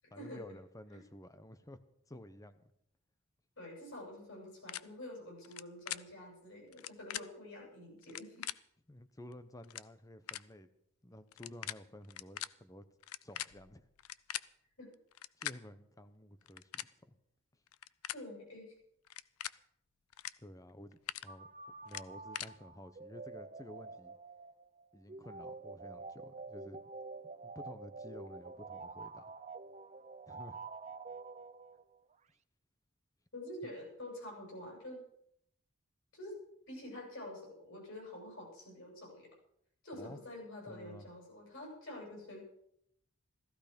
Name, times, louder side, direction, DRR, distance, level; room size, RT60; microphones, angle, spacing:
voice 1, 0.1-1.8 2.1-2.7 8.9-10.7 11.0-12.8 13.2-13.9 15.4-17.2 20.4-21.5 21.8-24.2 24.9-26.8 27.4-29.3 30.3-30.6 39.9-40.2 40.7-41.1, left 1 dB, 15° left, 11 dB, 0.9 m, -52 dB
voice 2, 3.6-8.5 14.8-14.9 18.1-18.7 33.3-35.0 36.1-36.4 36.7-39.3 39.8-42.4, left 1 dB, 60° left, -2 dB, 7.8 m, -47 dB
sound 1, 4.7-4.8 5.4-5.6 5.9-6.0 6.7-7.2 8.0-8.5 9.3-9.4 9.6-9.9 10.3-10.4 11.3-11.7 12.0-12.5 13.0-14.5 15.1-15.5 16.4-16.9 17.7-18.2 19.1-19.5 20.1-20.3 20.7-21.2 21.9-22.5, left 13 dB, 80° left, 0.5 m, -41 dB
sound 2, 21.3-32.0, right 3 dB, 30° right, 0.6 m, -48 dB
16.0 x 14.5 x 5.2 m, 0.72 s
head